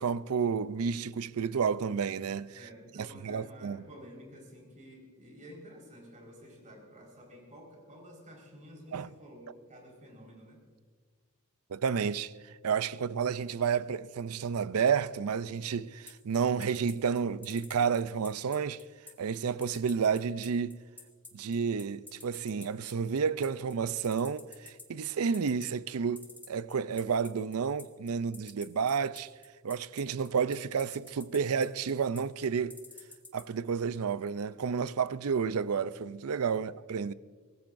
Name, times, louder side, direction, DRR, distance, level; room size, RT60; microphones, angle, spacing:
voice 1, 0.0-2.6 3.0-3.8 8.9-9.1 11.7-18.8 19.2-20.8 21.3-29.3 29.6-32.8 33.3-37.1, right 6 dB, 75° right, 0.5 m, -31 dB
voice 2, 2.5-10.6 36.5-36.7, equal, 35° right, 4.6 m, -51 dB
sound 1, 16.1-33.4, left 3 dB, 10° left, 1.5 m, -49 dB
23.5 x 19.5 x 2.6 m
head